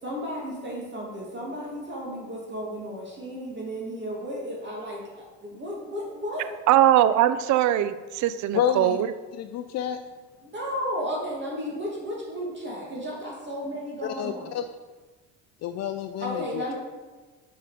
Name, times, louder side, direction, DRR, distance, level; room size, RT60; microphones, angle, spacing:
voice 1, 0.0-6.5 10.4-14.5 16.2-16.7, equal, 35° right, -3 dB, 2.5 m, -33 dB
voice 2, 6.7-9.1, right 12 dB, 60° right, 13 dB, 0.5 m, -21 dB
voice 3, 8.5-9.0 9.3-10.0 14.0-14.6 15.6-16.7, left 9 dB, 55° left, 8 dB, 0.5 m, -29 dB
6.6 x 5.8 x 5.0 m, 1.3 s
cardioid pair, 95°, 32 cm